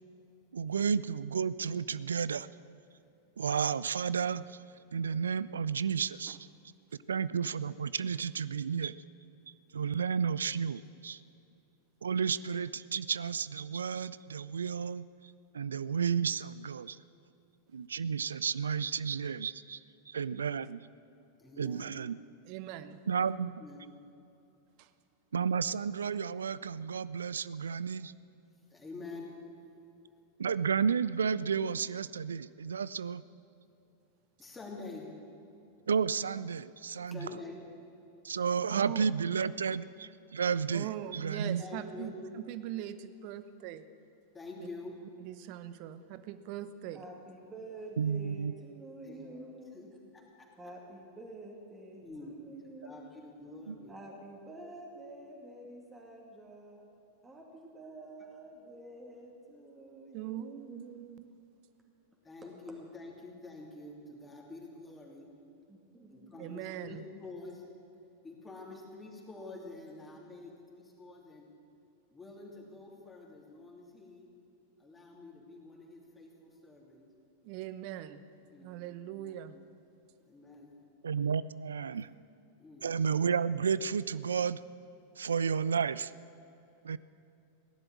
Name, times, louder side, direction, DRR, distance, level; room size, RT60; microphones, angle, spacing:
voice 1, 0.5-2.5 3.4-4.5 4.9-6.4 7.1-8.9 9.7-11.2 12.0-15.1 15.5-17.0 17.7-19.8 20.1-20.8 21.6-22.2 23.1-23.6 25.3-28.1 30.4-33.2 35.9-37.3 38.2-40.9 41.1-41.6 48.0-48.5 53.7-53.8 81.0-82.1 82.8-84.6 85.2-86.1 86.8-87.0, right 6 dB, 70° right, 17 dB, 0.3 m, -32 dB
voice 2, 21.4-21.9 23.6-23.8 28.7-29.3 34.4-35.1 37.1-37.6 41.6-42.1 44.3-44.9 49.0-49.2 49.7-49.9 50.1-50.5 52.0-52.3 52.8-54.0 62.2-65.3 66.1-67.6 68.2-71.5 72.1-74.3 74.8-77.0 78.5-78.7 79.1-79.4 80.3-80.7 82.6-83.0, left 3 dB, 15° left, -1 dB, 3.0 m, -47 dB
voice 3, 22.4-23.0 24.8-24.9 38.7-39.0 40.7-43.8 44.6-44.7 45.2-47.0 52.5-52.6 60.1-61.3 66.4-67.0 77.4-78.2 78.6-79.6, right 12 dB, 45° right, 12 dB, 0.8 m, -41 dB
voice 4, 46.9-49.8 50.6-53.1 53.9-56.9 57.2-60.8 65.7-66.3, right 1 dB, 15° right, -1 dB, 2.2 m, -49 dB
17.0 x 11.0 x 7.4 m, 2.7 s
figure-of-eight pair, 90°, 0 cm